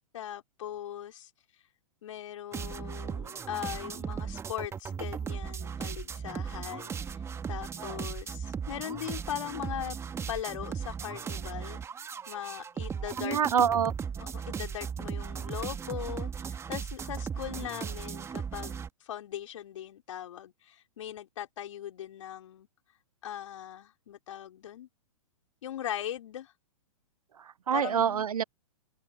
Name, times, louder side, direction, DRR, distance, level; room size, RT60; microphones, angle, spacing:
voice 1, 0.1-1.3 2.0-7.2 7.5-10.0 10.3-11.8 12.3-13.4 14.2-22.7 23.2-24.9 25.6-26.5 27.7-28.3, left 11 dB, 60° left, 4.6 m, -39 dB
sound 1, 2.5-18.9, right 6 dB, 15° right, 1.7 m, -37 dB
voice 2, 13.2-13.9 27.7-28.4, right 8 dB, 80° right, 0.5 m, -26 dB
figure-of-eight pair, 115°, 19 cm